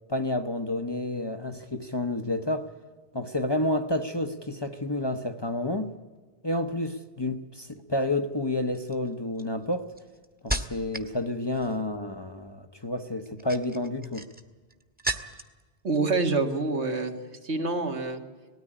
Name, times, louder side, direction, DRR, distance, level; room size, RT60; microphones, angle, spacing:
voice 1, 0.1-2.7 3.1-5.9 6.4-9.9 10.4-14.3, left 1 dB, 25° left, 7 dB, 0.8 m, -30 dB
sound 1, 7.7-8.0 8.7-11.1 11.4-11.9 13.2-15.6 15.9-16.6 16.9-17.1, right 1 dB, 10° right, 1.1 m, -36 dB
voice 2, 15.8-17.1 17.4-18.2, right 3 dB, 85° right, 4 dB, 2.0 m, -26 dB
19.0 x 13.5 x 9.9 m, 1.3 s
omnidirectional pair, 1.1 m